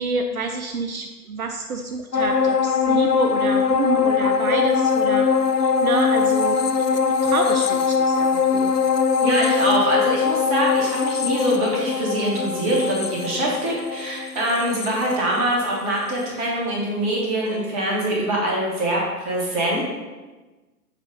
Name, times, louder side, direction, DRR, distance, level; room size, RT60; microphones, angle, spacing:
voice 1, 0.0-5.3 5.6-6.6 6.9-8.7, right 4 dB, 65° right, 5 dB, 0.6 m, -28 dB
sound 1, 2.1-15.8 16.2-16.3, left 6 dB, 85° left, 0.6 m, -21 dB
voice 2, 9.2-19.8, right 1 dB, 25° right, -3 dB, 1.5 m, -23 dB
7.2 x 2.7 x 5.0 m, 1.2 s
figure-of-eight pair, 125°, 46 cm